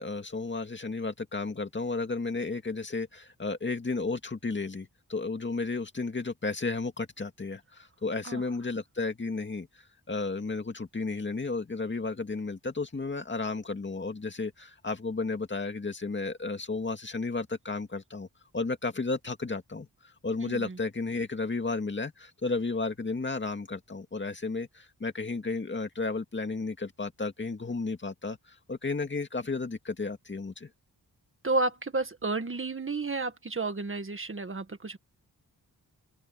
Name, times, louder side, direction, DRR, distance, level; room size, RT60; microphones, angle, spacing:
voice 1, 0.0-18.3 18.5-19.9 20.2-30.7, left 3 dB, 30° left, 2.1 m, -33 dB
voice 2, 20.4-20.8 31.4-35.0, right 3 dB, 35° right, 1.7 m, -31 dB
open air
wide cardioid pair, 150°, 38 cm